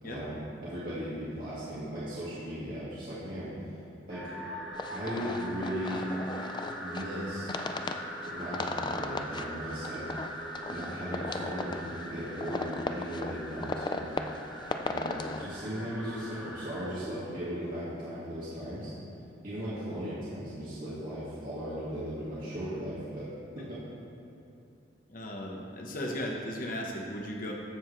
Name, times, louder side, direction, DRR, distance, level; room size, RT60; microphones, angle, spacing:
voice 1, 0.0-3.5 4.1-4.2 4.9-6.0 6.8-7.5 8.2-10.0 10.7-14.1 14.8-18.9 19.4-23.3 23.6-23.8, equal, 50° right, -11 dB, 2.1 m, -37 dB
sound 1, 4.1-16.9, equal, 5° left, 1.8 m, -41 dB
sound 2, 4.8-15.5, left 3 dB, 25° left, 0.3 m, -37 dB
voice 2, 25.1-27.5, left 1 dB, 45° left, 0 dB, 1.1 m, -36 dB
13.0 x 7.2 x 3.3 m, 2.7 s
head